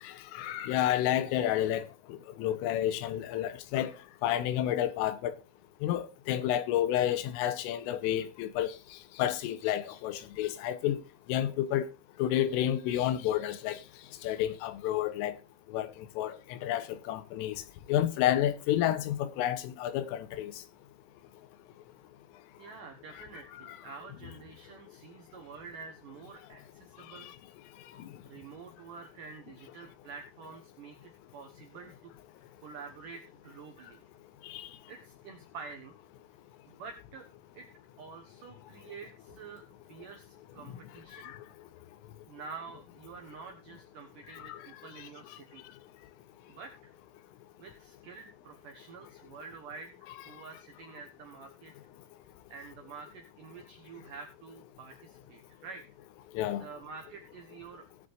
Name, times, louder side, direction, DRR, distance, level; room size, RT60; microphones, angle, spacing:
voice 1, 0.0-3.9 4.2-5.3 5.8-8.7 9.2-11.0 11.3-11.9 12.2-13.8 14.2-15.4 15.7-17.6 17.9-20.5 23.5-23.8 27.2-27.3 34.4-34.7 41.2-41.4 44.3-44.6 56.4-56.6, left 12 dB, 80° left, 3.3 m, -30 dB
voice 2, 22.6-27.3 28.2-34.0 34.9-35.9 36.7-37.3 37.5-37.7 38.0-41.3 42.3-45.6 46.5-46.9 47.6-51.7 52.5-55.8 56.6-57.9, right 5 dB, 90° right, 1.8 m, -48 dB
19.0 x 8.1 x 2.6 m
omnidirectional pair, 6.0 m